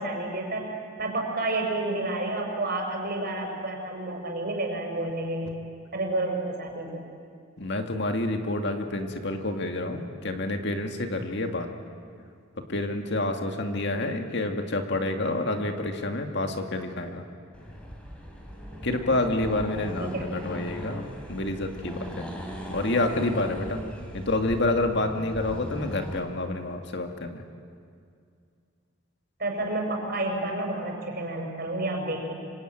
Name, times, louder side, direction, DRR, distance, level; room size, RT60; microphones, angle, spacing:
voice 1, 0.0-5.6 5.9-7.0 20.0-20.4 29.4-32.3, right 2 dB, 50° right, 1 dB, 6.0 m, -30 dB
voice 2, 7.6-11.7 12.6-17.2 18.8-21.0 21.3-22.3 22.7-23.8 24.1-27.4, left 2 dB, 60° left, 5 dB, 2.1 m, -28 dB
Accelerating revving vroom, 17.5-26.3, equal, 5° left, 3.6 m, -39 dB
26.0 x 24.5 x 9.1 m, 2.3 s
head